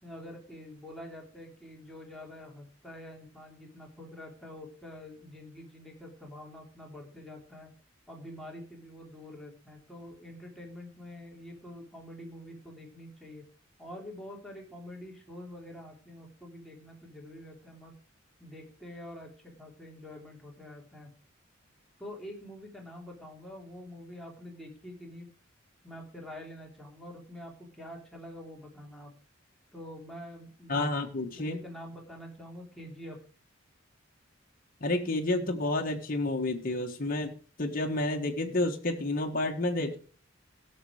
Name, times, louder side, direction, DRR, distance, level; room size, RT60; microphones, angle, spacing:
voice 1, 0.0-7.7 8.1-13.4 13.8-17.9 18.4-21.1 22.0-25.3 25.8-29.1 29.7-30.9 31.3-33.2, left 1 dB, ahead, -1 dB, 3.0 m, -46 dB
voice 2, 30.7-31.6 34.8-37.3 37.6-40.0, left 2 dB, 45° left, 2 dB, 1.5 m, -30 dB
16.5 x 6.8 x 5.0 m, 0.41 s
head